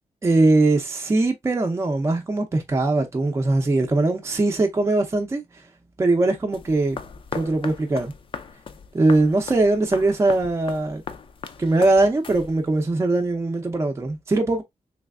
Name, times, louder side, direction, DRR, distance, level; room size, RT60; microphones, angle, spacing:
voice 1, 0.2-5.4 6.0-7.0 7.3-8.1 8.9-11.0 11.6-14.6, right 2 dB, 20° right, 0.6 m, -21 dB
sound 1, 6.5-12.8, left 6 dB, 45° left, 0.5 m, -38 dB
3.3 x 3.2 x 2.3 m
wide cardioid pair, 130°, 12 cm